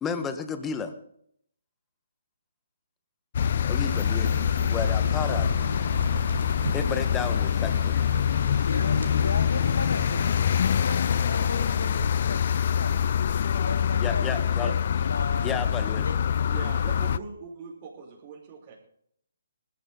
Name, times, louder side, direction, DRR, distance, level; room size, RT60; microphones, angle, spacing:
voice 1, 0.0-0.9 3.7-4.4 4.7-5.5 6.7-8.0 14.0-14.7 15.4-16.1, left 6 dB, 10° left, 8 dB, 1.7 m, -32 dB
sound 1, 3.3-17.2, left 8 dB, 50° left, 0.7 m, -25 dB
sound 2, 3.8-12.1, right 3 dB, 80° right, 4.3 m, -38 dB
voice 2, 8.6-10.1 10.5-13.0 13.6-15.6 16.0-16.4, left 3 dB, 80° left, 6 dB, 3.1 m, -36 dB
voice 3, 16.5-18.7, right 5 dB, 30° right, -5 dB, 5.5 m, -41 dB
21.0 x 13.5 x 4.1 m, 0.67 s
hypercardioid pair, 155°, 0 cm